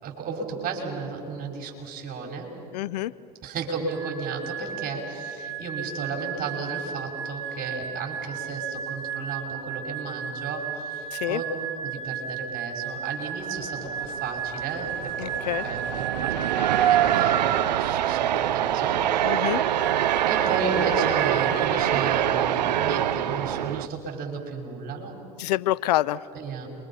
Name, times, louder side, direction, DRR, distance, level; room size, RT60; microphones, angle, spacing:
voice 1, 0.0-2.5 3.4-11.4 11.8-16.3 16.6-19.6 20.3-25.1 26.3-26.7, right 4 dB, 45° right, 0 dB, 5.7 m, -34 dB
voice 2, 2.7-3.1 11.1-11.4 15.2-15.6 19.2-19.6 25.4-26.2, left 15 dB, 75° left, 19 dB, 0.5 m, -26 dB
sound 1, 3.9-17.6 19.5-21.7, right 6 dB, 5° right, 6.0 m, -34 dB
sound 2, 13.5-23.9, right 11 dB, 85° right, 0.7 m, -25 dB
29.0 x 24.0 x 5.8 m, 2.7 s
hypercardioid pair, 80°, 21 cm